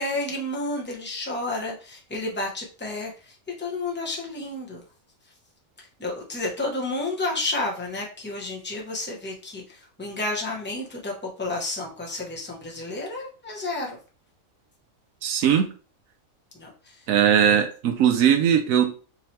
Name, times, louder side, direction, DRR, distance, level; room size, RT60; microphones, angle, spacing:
voice 1, 0.0-4.8 6.0-14.0 16.5-17.1 17.4-17.6, left 2 dB, 10° left, -2 dB, 0.9 m, -31 dB
voice 2, 15.2-15.7 17.1-18.9, right 9 dB, 90° right, 6 dB, 1.0 m, -19 dB
5.0 x 3.0 x 3.2 m, 0.37 s
omnidirectional pair, 1.4 m